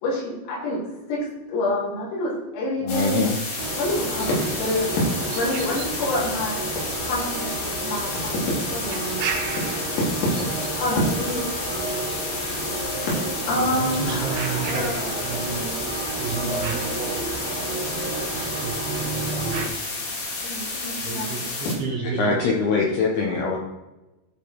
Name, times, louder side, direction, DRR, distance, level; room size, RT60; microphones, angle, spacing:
voice 1, 0.0-3.3 3.8-6.6 7.0-9.2 10.7-11.9 13.0-13.1 13.5-15.5 20.4-21.3, left 1 dB, 90° left, -5 dB, 6.3 m, -27 dB
voice 2, 2.8-3.4 22.0-23.6, left 4 dB, 75° left, -1 dB, 2.4 m, -23 dB
sound 1, 2.9-21.8, left 3 dB, 50° left, 2.5 m, -31 dB
sound 2, 3.6-19.7, right 3 dB, 90° right, 1.9 m, -31 dB
voice 3, 13.7-15.8 16.1-17.7 18.3-19.7 21.0-22.7, right 4 dB, 60° right, -2 dB, 3.2 m, -32 dB
14.5 x 5.2 x 4.7 m, 1.0 s
omnidirectional pair, 5.8 m